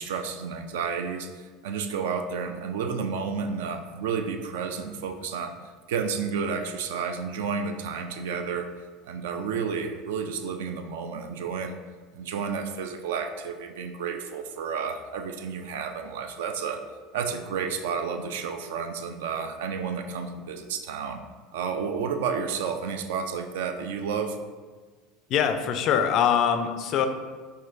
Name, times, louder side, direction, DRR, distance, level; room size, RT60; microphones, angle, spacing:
voice 1, 0.0-5.5 5.9-8.7 9.0-11.8 12.1-16.8 17.1-21.2 21.5-24.4, right 6 dB, 65° right, 7 dB, 0.3 m, -31 dB
voice 2, 25.3-27.1, left 8 dB, 45° left, 7 dB, 0.3 m, -23 dB
5.3 x 2.7 x 2.6 m, 1.4 s
figure-of-eight pair, 70°, 0 cm